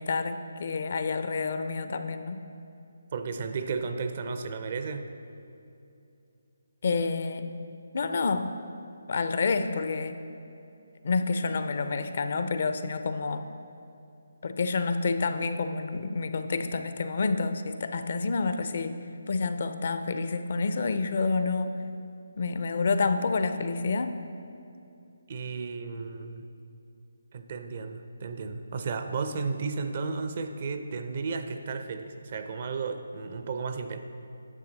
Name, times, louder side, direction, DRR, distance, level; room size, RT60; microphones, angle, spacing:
voice 1, 0.0-2.4 6.8-7.5 7.9-8.5 9.1-10.2 11.0-13.5 14.4-19.0 19.3-21.8 22.4-24.2, left 4 dB, 55° left, 9 dB, 0.5 m, -28 dB
voice 2, 3.1-5.1 25.3-26.4 27.3-34.0, right 4 dB, 45° right, 8 dB, 0.5 m, -33 dB
9.8 x 6.8 x 4.0 m, 2.7 s
figure-of-eight pair, 160°, 0 cm